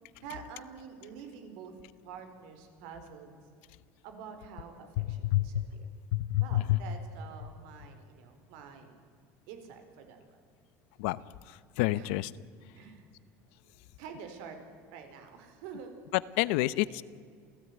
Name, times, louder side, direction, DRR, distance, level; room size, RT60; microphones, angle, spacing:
voice 1, 0.2-1.7 2.0-3.3 4.0-5.9 6.4-9.0 9.5-10.4 11.9-12.1 12.7-13.1 14.0-14.6 14.9-15.9, right 6 dB, 80° right, 6 dB, 4.7 m, -47 dB
voice 2, 5.0-5.5 6.1-6.8 11.0-12.3 16.1-17.0, left 17 dB, 85° left, 18 dB, 0.9 m, -29 dB
28.5 x 17.0 x 9.5 m, 2.2 s
cardioid pair, 155°, 6 cm